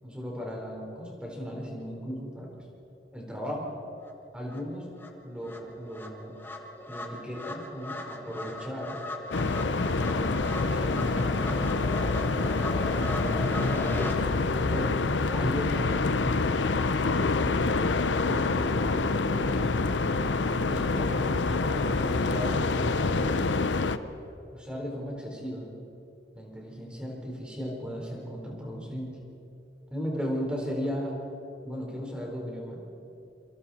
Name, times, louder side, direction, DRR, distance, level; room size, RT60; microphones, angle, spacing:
voice 1, 0.0-2.6 3.1-3.7 4.3-4.9 5.2-6.3 6.9-9.0 10.0-11.7 12.0-12.4 13.1-14.9 15.3-16.4 17.0-19.8 20.4-23.5 24.5-25.7 26.3-29.2 29.9-31.1 31.6-32.8, equal, 5° right, -2 dB, 4.4 m, -36 dB
sound 1, 4.1-4.2 4.5-14.2, left 1 dB, 10° left, 1.6 m, -38 dB
sound 2, 9.3-24.0, left 3 dB, 85° left, 0.8 m, -26 dB
27.5 x 26.0 x 4.4 m, 2.8 s
head